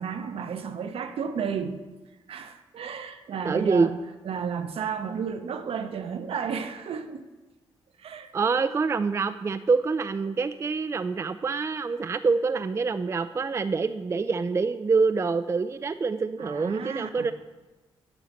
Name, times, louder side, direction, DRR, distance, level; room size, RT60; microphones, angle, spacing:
voice 1, 0.0-1.8 2.3-4.0 4.2-7.2 8.0-8.3 16.4-17.3, right 6 dB, 70° right, 0.8 m, -32 dB
voice 2, 3.4-3.9 8.3-17.3, right 4 dB, 25° right, 0.3 m, -26 dB
9.2 x 4.0 x 7.1 m
cardioid pair, 65°, 10 cm